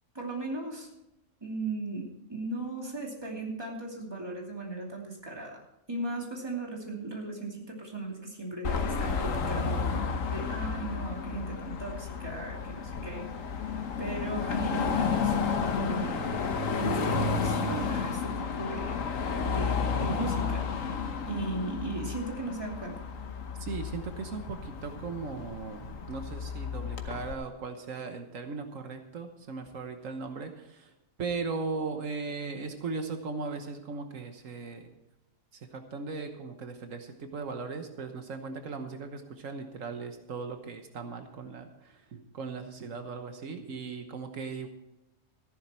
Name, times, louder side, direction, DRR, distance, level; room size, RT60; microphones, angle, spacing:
voice 1, 0.1-0.9 1.4-5.6 5.9-13.5 14.0-16.3 16.8-19.0 19.4-20.7 21.3-23.0, right 2 dB, 20° right, -1 dB, 2.7 m, -37 dB
Car passing by / Traffic noise roadway noise / Engine, 8.6-27.3, left 5 dB, 80° left, 1.4 m, -32 dB
voice 2, 23.6-30.9 31.2-34.9 35.7-44.7, right 4 dB, 80° right, 6 dB, 1.5 m, -38 dB
14.5 x 11.0 x 4.4 m, 0.89 s
omnidirectional pair, 1.3 m